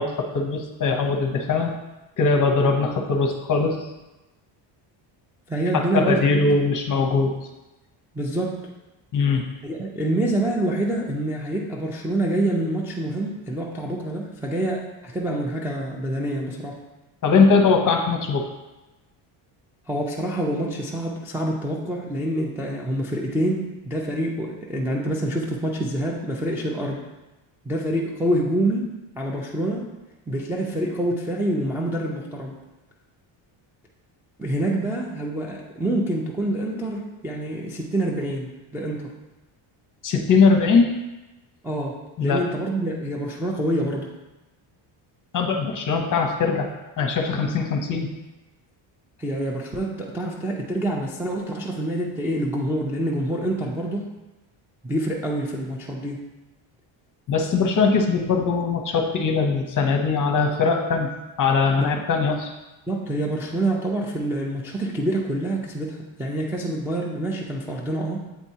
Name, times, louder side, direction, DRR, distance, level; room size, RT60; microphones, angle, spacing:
voice 1, 0.0-1.7 2.2-3.9 5.7-7.3 9.1-9.5 17.2-18.5 40.0-41.0 42.2-42.4 45.3-46.7 47.0-48.1 57.3-61.1 61.4-62.5, left 4 dB, 40° left, 3 dB, 0.8 m, -21 dB
voice 2, 5.5-6.5 8.1-8.6 9.6-16.8 19.9-27.0 27.6-28.9 29.2-29.9 30.3-32.6 34.4-39.1 41.6-44.1 49.2-54.1 54.8-56.2 61.8-61.9 62.9-68.2, right 1 dB, 5° right, -3 dB, 0.4 m, -26 dB
8.0 x 4.4 x 2.8 m, 1.0 s
cardioid pair, 135°, 50 cm